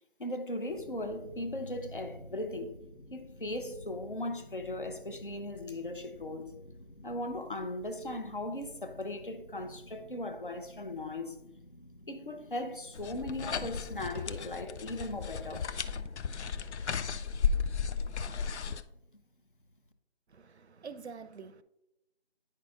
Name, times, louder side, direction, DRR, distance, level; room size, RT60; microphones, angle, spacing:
voice 1, 0.2-2.8 3.1-6.6 7.0-11.4 12.1-15.7, left 1 dB, 50° left, 0.7 m, -38 dB
sound 1, 0.7-19.9, equal, 65° left, 1.1 m, -53 dB
sound 2, 13.0-18.8, left 6 dB, 85° left, 0.5 m, -34 dB
voice 2, 20.3-21.6, right 5 dB, 75° right, 0.6 m, -46 dB
9.4 x 5.6 x 2.4 m
figure-of-eight pair, 175°, 33 cm